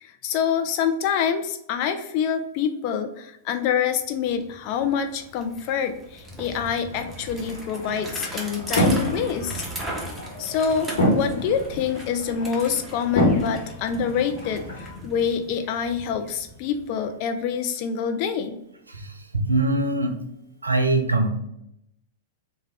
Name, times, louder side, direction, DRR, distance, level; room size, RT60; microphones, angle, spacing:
voice 1, 0.0-9.6 10.4-18.5, left 7 dB, 45° left, 7 dB, 0.4 m, -26 dB
Bicycle, 3.9-4.0 4.3-17.2, right 1 dB, 5° right, 0.8 m, -38 dB
sound 1, 6.9-14.9, equal, 65° left, 1.0 m, -28 dB
voice 2, 18.9-20.2 20.6-21.3, right 2 dB, 85° right, 5 dB, 0.5 m, -23 dB
3.3 x 2.2 x 3.4 m, 0.80 s
figure-of-eight pair, 95°, 0 cm